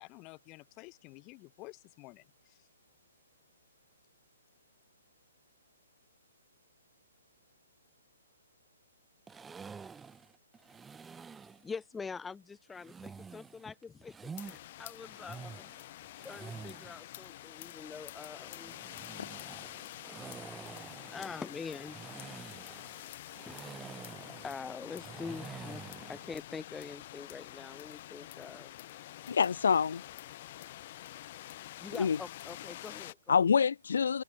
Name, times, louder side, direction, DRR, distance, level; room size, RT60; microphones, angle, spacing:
voice 1, 0.0-2.6, left 26 dB, 30° left, 5.7 m, -51 dB
sound 1, 9.3-11.7 12.7-14.6 15.0-17.0 18.4-26.4, right 5 dB, 10° right, 3.8 m, -48 dB
voice 2, 11.6-15.6 16.2-18.8 20.6-20.7 21.0-22.0 23.5-23.6 24.4-28.7 31.8-33.2, left 5 dB, 10° left, 2.2 m, -44 dB
sound 2, 14.4-33.1, left 14 dB, 45° left, 4.2 m, -47 dB
voice 3, 29.3-30.0 32.0-32.2 33.3-34.2, left 6 dB, 75° left, 0.6 m, -26 dB
hypercardioid pair, 145°, 0 cm